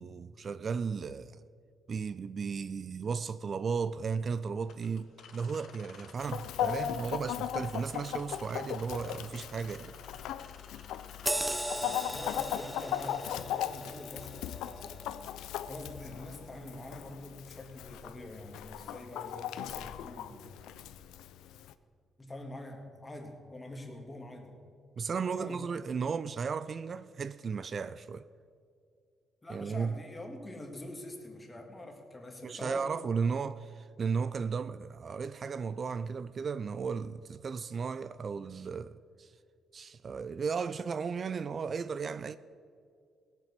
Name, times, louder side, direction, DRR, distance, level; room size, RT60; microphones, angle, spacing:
voice 1, 0.0-1.4 1.9-10.0 25.0-28.3 29.5-30.0 32.4-39.3 39.7-42.4, right 5 dB, 45° right, 0.3 m, -35 dB
sound 1, 4.6-13.4, left 6 dB, 75° left, 1.3 m, -52 dB
Chicken rooster, 6.2-21.7, left 11 dB, 90° left, 0.5 m, -38 dB
sound 2, 11.3-16.2 16.6-16.8, right 1 dB, 10° right, 0.6 m, -38 dB
voice 2, 11.8-15.0 15.6-20.5 22.2-24.6 25.1-25.6 26.0-26.1 29.4-33.0, left 1 dB, 20° left, 2.1 m, -45 dB
16.5 x 7.4 x 6.7 m
cardioid pair, 90°, 0 cm